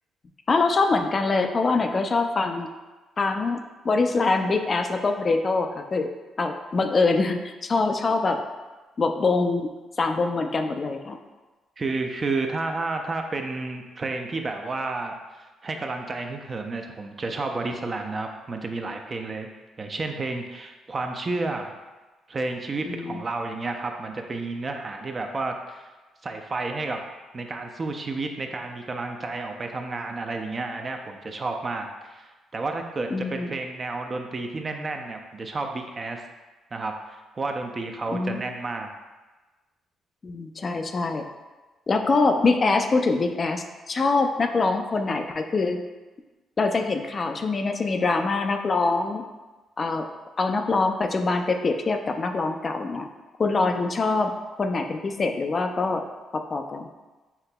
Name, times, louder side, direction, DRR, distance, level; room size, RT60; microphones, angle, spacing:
voice 1, 0.5-2.7 3.2-6.1 6.4-8.4 9.0-9.7 10.0-11.2 22.9-23.2 33.1-33.6 38.1-38.4 40.2-41.2 41.9-45.8 46.6-49.2 49.8-50.1 50.4-53.1 53.4-54.3 54.6-56.0 56.3-56.9, left 3 dB, 40° left, 5 dB, 0.3 m, -24 dB
voice 2, 11.8-19.5 19.8-21.7 22.3-25.9 26.2-27.0 27.3-36.2 36.7-38.9, right 3 dB, 35° right, 4 dB, 0.4 m, -31 dB
5.7 x 2.8 x 2.2 m, 1.2 s
cardioid pair, 90°, 0 cm